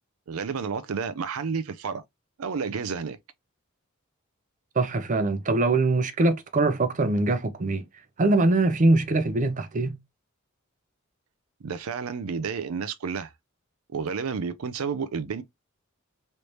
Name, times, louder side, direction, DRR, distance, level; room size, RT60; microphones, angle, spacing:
voice 1, 0.3-2.0 2.4-3.2 11.6-13.3 13.9-15.4, right 5 dB, 90° right, 0.5 m, -31 dB
voice 2, 4.8-7.8 8.2-10.0, right 2 dB, 35° right, 0.5 m, -23 dB
3.2 x 3.2 x 2.6 m
head